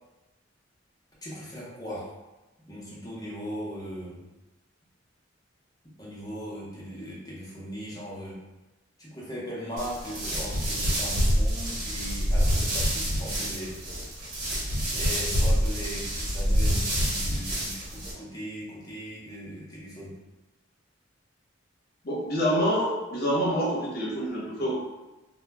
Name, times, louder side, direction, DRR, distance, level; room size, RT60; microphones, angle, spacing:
voice 1, 1.2-2.1 2.6-4.3 6.0-8.4 9.0-13.8 14.9-20.2, equal, 20° left, -7 dB, 0.7 m, -38 dB
stepping on leaves, 9.8-18.1, equal, 55° right, 1.1 m, -27 dB
voice 2, 22.0-24.8, equal, 55° left, -5 dB, 0.8 m, -26 dB
2.1 x 2.1 x 3.3 m, 1.1 s
head